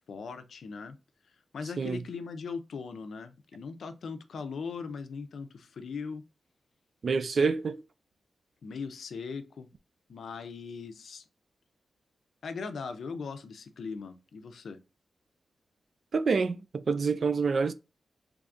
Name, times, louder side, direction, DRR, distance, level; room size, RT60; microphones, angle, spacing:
voice 1, 0.1-1.0 1.5-6.2 8.6-9.7 10.1-11.2 12.4-14.8, left 5 dB, 75° left, 0.5 m, -39 dB
voice 2, 7.0-7.8 16.1-17.7, right 5 dB, 55° right, 0.4 m, -27 dB
3.5 x 3.3 x 2.5 m
wide cardioid pair, 130°, 0 cm